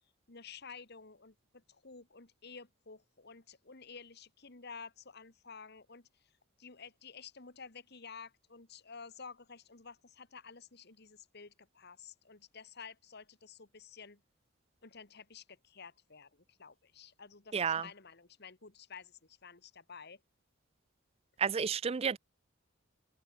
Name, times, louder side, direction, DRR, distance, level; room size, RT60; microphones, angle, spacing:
voice 1, 0.3-6.3 6.6-14.2 14.8-20.2, left 5 dB, 55° left, 2.0 m, -52 dB
voice 2, 17.5-17.8 21.4-22.2, right 6 dB, 30° right, 0.4 m, -31 dB
open air
head